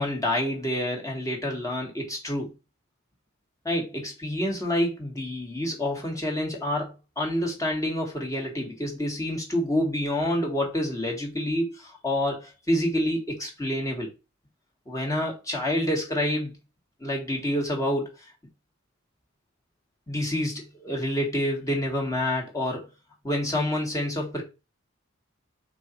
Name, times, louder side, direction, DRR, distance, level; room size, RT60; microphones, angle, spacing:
voice 1, 0.0-2.5 3.7-14.1 14.9-16.5 17.0-18.1 20.1-22.9 23.2-24.4, left 1 dB, 15° left, 1.8 m, -28 dB
5.4 x 4.0 x 4.5 m
head